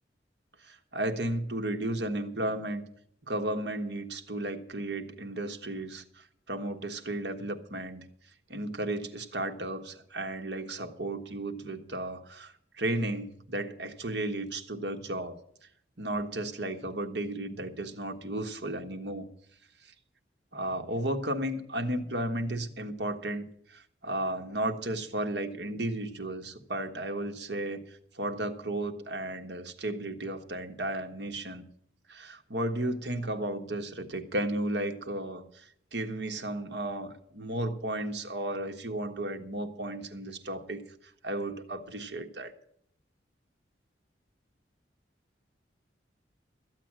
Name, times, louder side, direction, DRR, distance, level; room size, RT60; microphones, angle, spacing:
voice 1, 0.6-2.8 3.3-8.0 8.5-15.4 16.0-19.3 20.5-23.4 23.7-31.6 32.1-35.6 35.9-40.8 41.2-42.5, right 1 dB, 65° right, 6 dB, 1.5 m, -34 dB
14.0 x 8.1 x 7.5 m, 0.68 s
head